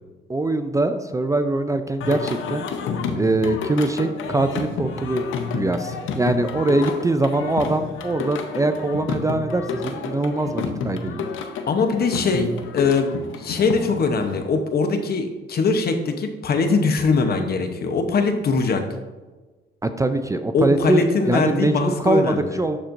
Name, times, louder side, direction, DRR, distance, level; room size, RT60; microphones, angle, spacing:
voice 1, 0.3-2.7 3.2-5.2 5.5-11.3 19.8-22.8, right 2 dB, 15° right, 9 dB, 0.4 m, -22 dB
Singing, 2.0-14.4, left 5 dB, 80° left, 0.8 m, -30 dB
voice 2, 11.7-13.1 13.3-18.8 20.5-22.6, left 4 dB, 50° left, 7 dB, 0.9 m, -21 dB
12.0 x 4.3 x 2.6 m, 1.2 s
cardioid pair, 90°, 20 cm